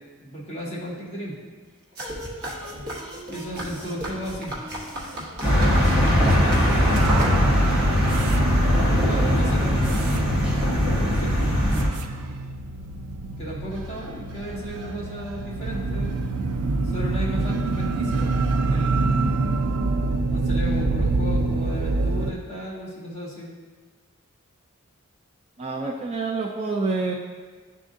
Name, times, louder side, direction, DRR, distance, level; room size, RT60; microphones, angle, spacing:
voice 1, 0.2-1.5 3.3-4.5 6.2-7.4 7.6-9.7 11.1-11.4 13.4-16.2 16.8-19.0 20.3-23.5, equal, 25° left, -8 dB, 1.8 m, -34 dB
sound 1, 2.0-7.8, equal, 45° right, 1.1 m, -35 dB
sound 2, 5.4-11.9, equal, 5° right, 1.3 m, -20 dB
sound 3, 6.9-22.3, right 3 dB, 85° right, 0.4 m, -26 dB
voice 2, 9.1-10.0 25.6-27.1, right 3 dB, 30° right, 0 dB, 0.4 m, -28 dB
10.5 x 3.7 x 2.6 m, 1.4 s
head